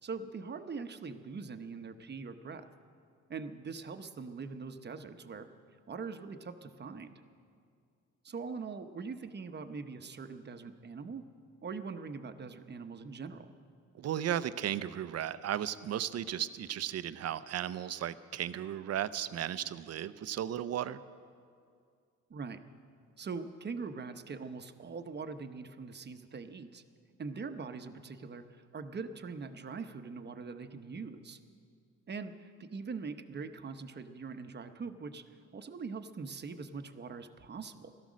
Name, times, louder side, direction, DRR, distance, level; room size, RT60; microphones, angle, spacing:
voice 1, 0.0-2.7 3.3-5.5 5.9-7.2 8.2-11.2 11.6-13.5 22.3-22.6 23.2-26.8 27.2-31.4 32.1-37.9, right 4 dB, 35° right, 9 dB, 0.9 m, -42 dB
voice 2, 14.0-21.0, right 10 dB, 55° right, 14 dB, 0.6 m, -35 dB
16.5 x 13.0 x 6.3 m, 2.3 s
cardioid pair, 90°, 30 cm